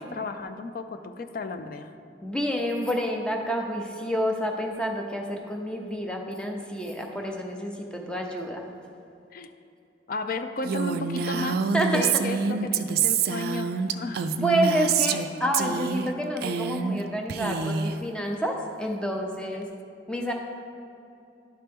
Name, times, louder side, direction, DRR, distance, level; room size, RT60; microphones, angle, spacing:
voice 1, 0.0-1.9 9.3-9.5 10.1-11.6 11.9-14.3 19.5-19.6, left 3 dB, 50° left, 8 dB, 0.4 m, -34 dB
voice 2, 2.2-8.7 11.3-11.5 11.7-12.0 14.4-19.7 20.1-20.3, equal, 5° left, 1 dB, 0.6 m, -29 dB
Female speech woman speaking, 10.6-15.3 15.5-16.1 16.4-17.0 17.3-18.0, right 6 dB, 55° right, 0.3 m, -26 dB
11.0 x 4.4 x 3.5 m, 2.7 s
head